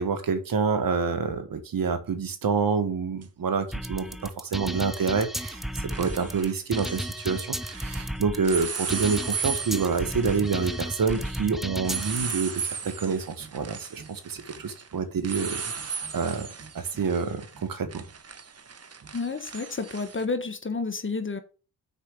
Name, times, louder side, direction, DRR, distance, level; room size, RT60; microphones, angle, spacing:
voice 1, 0.0-16.5 16.7-18.0, right 5 dB, 50° right, 1.7 m, -28 dB
sound 1, 3.2-3.3 5.1-5.3 5.6-8.1 8.4-20.3, right 6 dB, 35° right, 1.2 m, -37 dB
sound 2, 3.7-12.3, equal, ahead, 0.7 m, -34 dB
voice 2, 19.1-21.4, left 4 dB, 25° left, 1.3 m, -30 dB
6.5 x 4.9 x 6.9 m
hypercardioid pair, 45°, 44 cm